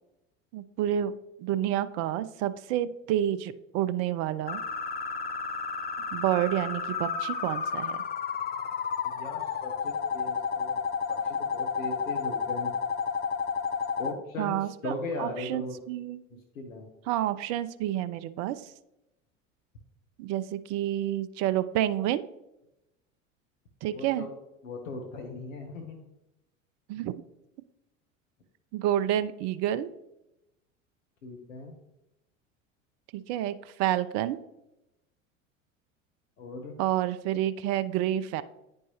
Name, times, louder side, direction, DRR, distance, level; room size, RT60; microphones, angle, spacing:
voice 1, 0.5-1.1 1.4-4.6 6.1-8.0 14.4-16.4 17.1-18.7 20.2-22.2 23.8-24.3 26.9-27.1 28.7-29.9 33.1-34.4 36.8-38.4, right 12 dB, 40° right, 14 dB, 0.4 m, -29 dB
sound 1, 4.5-14.1, left 6 dB, 25° left, 0.6 m, -31 dB
voice 2, 9.1-10.8 11.1-12.7 14.0-14.6 14.8-15.7 16.5-16.8 23.9-24.3 24.6-26.0 31.2-31.8 36.4-36.8, left 2 dB, 80° left, 2 dB, 1.1 m, -38 dB
9.4 x 5.3 x 3.0 m, 0.91 s
figure-of-eight pair, 75°, 39 cm